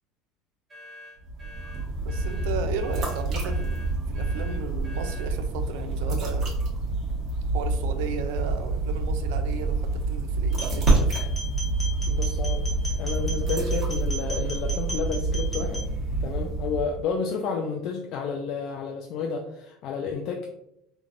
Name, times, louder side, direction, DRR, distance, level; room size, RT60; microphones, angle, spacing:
sound 1, 0.7-5.4, left 1 dB, 15° right, 1.2 m, -47 dB
sound 2, 1.2-17.1, right 2 dB, 45° right, 1.0 m, -27 dB
voice 1, 2.0-3.8 4.1-6.6 7.5-11.1, right 6 dB, 80° right, 8 dB, 0.3 m, -35 dB
sound 3, 10.5-15.9, right 1 dB, 10° left, 0.7 m, -37 dB
voice 2, 12.1-12.7 13.0-15.8 16.2-20.5, left 5 dB, 55° left, 1 dB, 0.3 m, -31 dB
3.2 x 2.1 x 2.5 m, 0.78 s
supercardioid pair, 135°, 0 cm